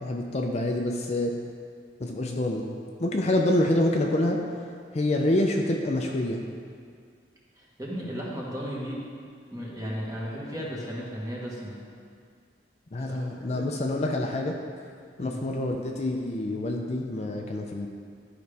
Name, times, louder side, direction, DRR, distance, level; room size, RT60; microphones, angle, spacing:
voice 1, 0.0-1.3 2.0-2.6 3.0-4.4 4.9-6.4 12.9-14.6 15.2-17.9, left 1 dB, 40° left, 2 dB, 0.5 m, -26 dB
voice 2, 7.6-9.0 9.5-11.8 13.1-13.3 13.5-13.7 15.2-15.4, equal, 20° right, -5 dB, 1.4 m, -35 dB
12.0 x 5.0 x 3.4 m, 2.2 s
head